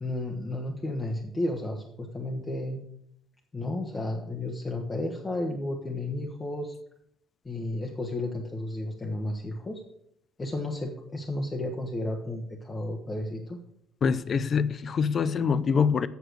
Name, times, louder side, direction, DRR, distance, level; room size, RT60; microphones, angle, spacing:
voice 1, 0.0-2.8 3.5-6.7 7.4-9.8 10.4-13.6, left 1 dB, 20° left, 0 dB, 1.1 m, -32 dB
voice 2, 14.0-16.1, left 6 dB, 40° left, 16 dB, 0.5 m, -25 dB
8.1 x 6.5 x 6.5 m, 0.74 s
cardioid pair, 120°, 0 cm